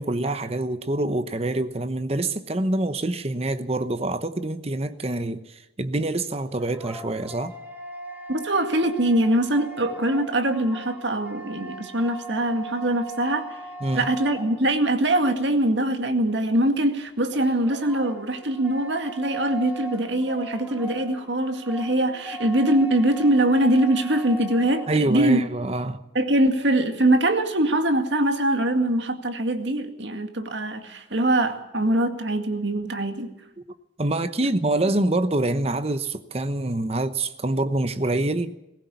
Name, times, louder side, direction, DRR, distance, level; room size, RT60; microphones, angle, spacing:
voice 1, 0.0-7.5 13.8-14.1 24.9-26.0 34.0-38.5, right 2 dB, 35° right, 0.9 m, -26 dB
sound 1, 6.3-15.0 17.3-25.1, right 1 dB, 10° right, 2.7 m, -39 dB
voice 2, 8.3-13.6 13.9-25.4 26.1-33.3, right 1 dB, 70° right, 2.1 m, -23 dB
20.0 x 17.5 x 8.3 m
head